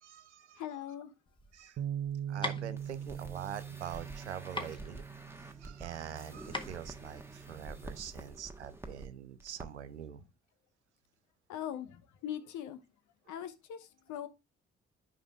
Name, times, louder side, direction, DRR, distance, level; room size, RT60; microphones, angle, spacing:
voice 1, 0.0-0.6 1.5-1.8 2.3-5.1 5.6-10.2, right 9 dB, 90° right, 0.5 m, -44 dB
voice 2, 0.6-1.1 11.5-12.8 13.3-14.3, left 10 dB, 60° left, 1.0 m, -41 dB
sound 1, 1.3-7.9, left 1 dB, 15° left, 1.5 m, -43 dB
Bass guitar, 1.8-8.0, right 9 dB, 45° right, 0.7 m, -42 dB
sound 2, 2.8-9.1 9.4-9.7 9.9-10.1, right 2 dB, 5° right, 1.3 m, -48 dB
13.5 x 5.1 x 2.4 m
figure-of-eight pair, 40°, 33 cm